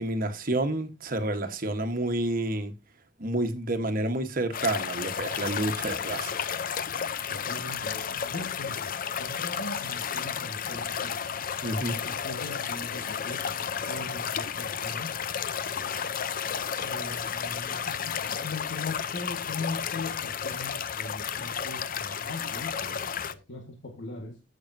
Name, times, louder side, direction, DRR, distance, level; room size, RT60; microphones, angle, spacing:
voice 1, 0.0-2.7 3.2-6.4 11.6-11.9, right 1 dB, 45° right, 1.3 m, -29 dB
sound 1, 4.5-23.3, left 7 dB, 45° left, 0.6 m, -32 dB
voice 2, 7.3-11.2 11.8-16.1 16.8-18.1 18.4-24.4, left 2 dB, 65° left, 1.7 m, -40 dB
14.5 x 6.5 x 2.7 m
head